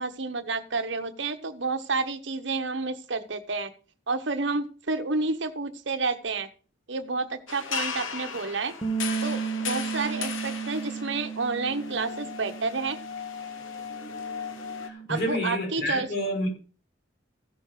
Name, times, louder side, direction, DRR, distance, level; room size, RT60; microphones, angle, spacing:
voice 1, 0.0-3.7 4.1-6.5 6.9-8.7 9.2-13.0 15.1-16.1, right 3 dB, 65° right, 9 dB, 1.1 m, -30 dB
sound 1, 7.5-14.9, left 6 dB, 90° left, 1.3 m, -36 dB
sound 2, 8.8-15.1, right 6 dB, 20° left, 1.3 m, -34 dB
voice 2, 14.8-16.5, equal, 60° left, 1 dB, 6.2 m, -29 dB
15.5 x 6.4 x 4.9 m, 0.38 s
head